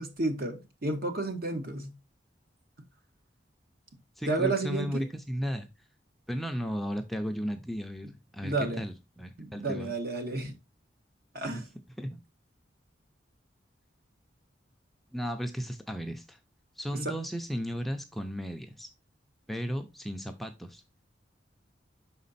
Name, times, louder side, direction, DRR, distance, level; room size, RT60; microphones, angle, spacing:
voice 1, 0.0-1.9 4.2-5.0 8.4-8.8 9.4-10.5 11.3-11.6 16.9-17.1, right 2 dB, 55° right, 1.2 m, -31 dB
voice 2, 4.2-5.7 6.3-9.9 11.4-11.6 12.0-12.2 15.1-16.4 16.8-18.9 19.5-20.8, equal, ahead, 0.5 m, -35 dB
5.9 x 4.2 x 4.0 m
head